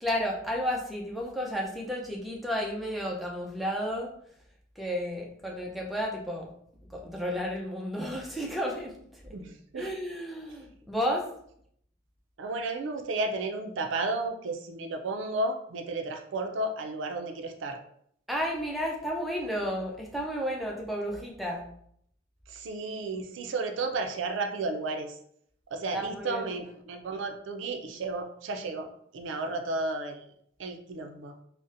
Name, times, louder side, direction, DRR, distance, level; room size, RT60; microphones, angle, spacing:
voice 1, 0.0-4.1 4.8-6.5 6.9-9.0 9.2-9.3 9.8-11.3 18.3-21.7 25.9-26.5, equal, ahead, -1 dB, 0.4 m, -32 dB
voice 2, 9.3-9.9 12.4-17.8 22.5-25.1 25.7-28.9 29.1-30.2 30.6-31.3, right 2 dB, 75° right, 5 dB, 0.4 m, -33 dB
4.0 x 2.1 x 2.5 m, 0.66 s
head